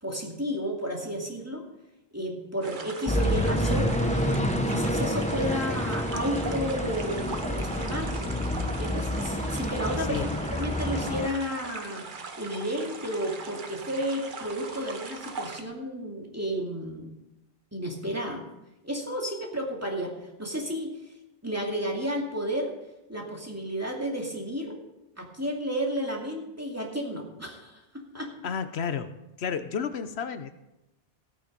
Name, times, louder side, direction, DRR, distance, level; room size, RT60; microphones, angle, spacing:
voice 1, 0.0-1.7 2.1-12.0 12.4-17.1 17.7-18.4 18.8-20.1 20.4-21.0 21.4-22.7 23.1-24.8 25.2-28.3, equal, 15° right, -1 dB, 2.5 m, -32 dB
sound 1, 2.6-15.6, right 4 dB, 55° right, 1.1 m, -41 dB
sound 2, 3.1-11.3, equal, 5° left, 0.9 m, -28 dB
voice 2, 28.4-30.5, left 6 dB, 90° left, 10 dB, 1.1 m, -32 dB
16.0 x 9.1 x 5.3 m, 0.91 s
omnidirectional pair, 1.0 m